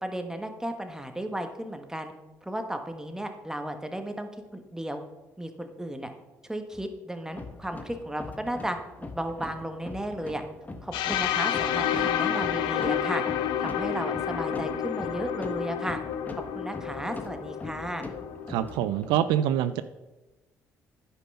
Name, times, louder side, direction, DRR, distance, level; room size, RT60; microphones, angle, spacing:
voice 1, 0.0-2.1 2.4-5.0 5.4-6.1 6.5-10.4 10.8-13.2 13.6-16.0 16.5-18.0, right 1 dB, 5° right, 6 dB, 1.3 m, -34 dB
sound 1, 7.3-19.2, left 2 dB, 20° left, 1.3 m, -42 dB
sound 2, 10.9-18.7, left 9 dB, 75° left, 0.6 m, -30 dB
voice 2, 18.5-19.8, right 11 dB, 75° right, 13 dB, 0.4 m, -25 dB
9.8 x 5.6 x 5.4 m, 1.1 s
hypercardioid pair, 55°, 8 cm